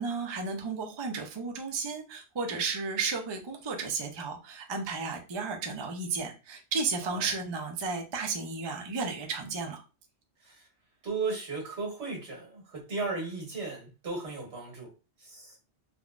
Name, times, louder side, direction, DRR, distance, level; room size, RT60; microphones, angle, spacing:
voice 1, 0.0-9.8, right 4 dB, 40° right, 0.4 m, -33 dB
voice 2, 11.0-14.9 15.2-15.6, right 4 dB, 80° right, 1.5 m, -36 dB
3.6 x 2.1 x 2.4 m
omnidirectional pair, 1.1 m